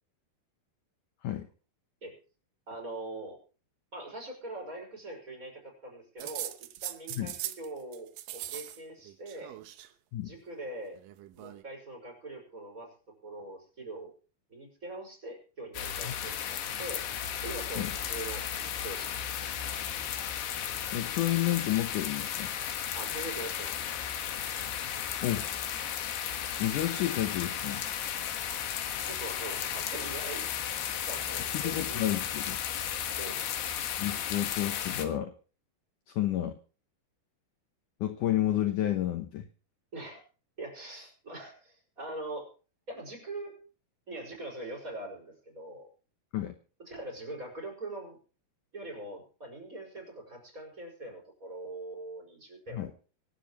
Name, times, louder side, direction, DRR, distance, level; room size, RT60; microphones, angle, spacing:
voice 1, 2.7-3.4 3.9-6.5 6.8-9.5 10.2-11.0 11.4-12.9 13.2-14.1 14.5-17.0 17.4-19.2 22.9-24.0 29.0-30.5 31.1-32.1 33.2-33.4 39.9-40.2 40.6-42.5 42.9-43.5 44.1-45.9 46.9-48.2 48.7-52.9, right 2 dB, 20° right, 1 dB, 5.7 m, -42 dB
sound 1, 6.2-7.7 7.9-8.8 9.0-9.9 10.9-11.6, right 13 dB, 75° right, 2.3 m, -40 dB
sound 2, 15.7-35.1, left 9 dB, 85° left, 3.7 m, -34 dB
voice 2, 20.9-22.5 25.2-25.5 26.6-27.8 31.5-32.6 34.0-35.3 36.1-36.6 38.0-39.5 46.3-46.5 52.7-52.9, left 13 dB, 65° left, 7 dB, 2.2 m, -30 dB
26.0 x 11.5 x 3.1 m, 0.37 s
omnidirectional pair, 4.6 m